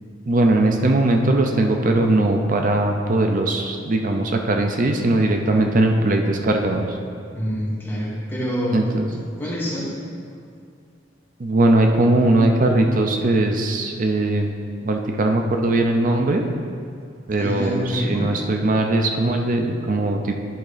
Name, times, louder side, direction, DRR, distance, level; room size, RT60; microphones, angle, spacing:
voice 1, 0.3-6.8 8.7-9.0 11.4-14.5 14.8-16.4 17.3-20.3, right 2 dB, 45° right, 3 dB, 0.5 m, -19 dB
voice 2, 7.3-8.9 9.4-9.9 17.4-18.3, equal, 10° left, -8 dB, 1.8 m, -26 dB
10.5 x 3.7 x 5.0 m, 2.3 s
head